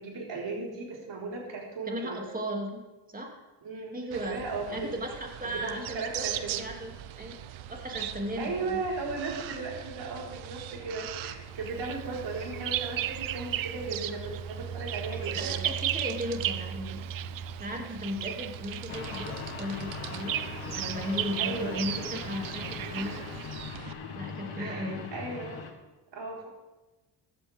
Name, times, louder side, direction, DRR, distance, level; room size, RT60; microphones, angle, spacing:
voice 1, 0.0-2.2 3.6-4.0 4.3-4.9 5.4-6.6 8.4-15.6 21.4-21.9 22.9-23.2 24.6-25.6 26.1-26.5, right 3 dB, 65° right, -3 dB, 4.9 m, -36 dB
voice 2, 1.9-3.4 3.9-4.4 4.7-7.4 7.7-8.8 15.4-17.0 17.6-20.3 20.6-23.2 24.1-25.1, equal, 20° right, 0 dB, 2.8 m, -36 dB
sound 1, 4.1-23.9, right 9 dB, 80° right, 0.8 m, -40 dB
Bird vocalization bird call bird song, 11.7-13.9 14.2-23.7, right 12 dB, 45° right, 0.5 m, -36 dB
sound 2, 18.9-25.7, left 6 dB, 75° left, 1.9 m, -40 dB
15.5 x 12.0 x 3.7 m, 1.1 s
cardioid pair, 80°, 47 cm